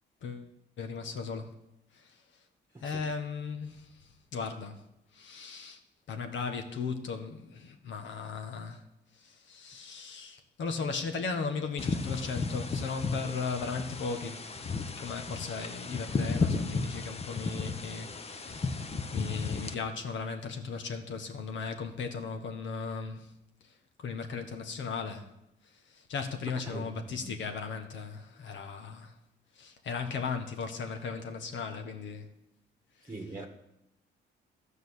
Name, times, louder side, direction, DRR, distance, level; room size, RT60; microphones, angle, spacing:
voice 1, 0.8-1.5 1.9-2.1 2.8-3.9 4.3-4.8 5.1-5.8 6.1-8.8 9.2-14.5 15.0-18.9 19.1-23.3 24.0-25.3 25.9-29.1 29.6-32.3, left 5 dB, 70° left, 1.5 m, -37 dB
sound 1, 11.8-19.7, left 4 dB, 30° left, 0.9 m, -34 dB
voice 2, 26.7-27.4 33.1-33.5, right 2 dB, 15° right, 1.5 m, -42 dB
12.5 x 5.3 x 8.2 m
cardioid pair, 90°, 20 cm